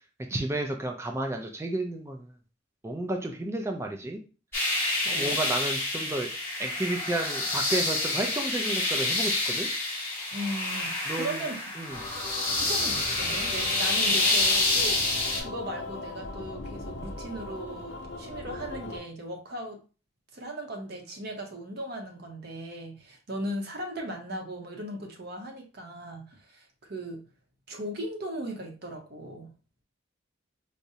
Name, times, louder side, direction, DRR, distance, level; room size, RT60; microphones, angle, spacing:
voice 1, 0.3-2.3 2.8-4.2 5.1-6.3 6.6-9.7 11.1-11.4 11.8-12.0, right 2 dB, 15° right, 3 dB, 0.4 m, -32 dB
sound 1, 4.5-15.4, left 2 dB, 10° left, 1.0 m, -28 dB
voice 2, 5.0-5.4 10.3-11.7 12.6-19.8 20.3-27.2 27.7-29.5, right 1 dB, 50° right, 2 dB, 0.7 m, -38 dB
sound 2, 11.9-19.0, left 2 dB, 60° left, 0.7 m, -40 dB
4.7 x 2.0 x 2.7 m, 0.35 s
head